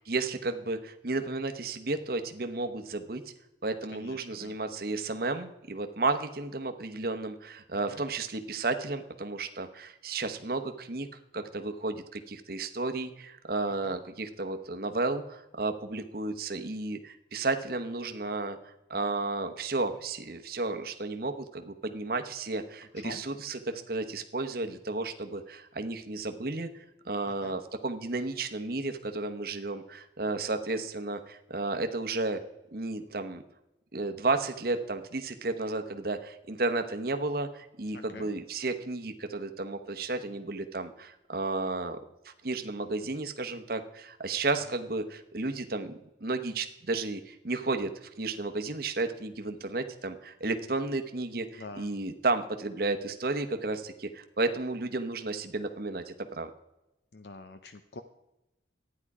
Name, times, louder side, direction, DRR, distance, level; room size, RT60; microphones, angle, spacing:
voice 1, 0.1-3.2 3.6-11.1 11.3-32.4 32.7-33.4 33.9-42.0 42.2-56.5, right 3 dB, 50° right, 7 dB, 1.0 m, -33 dB
voice 2, 3.9-4.6 7.9-8.0 13.8-14.0 23.0-23.2 27.4-27.6 37.9-38.3 51.5-51.9 57.1-58.0, left 3 dB, 60° left, 9 dB, 0.6 m, -46 dB
12.5 x 9.8 x 4.8 m, 0.92 s
head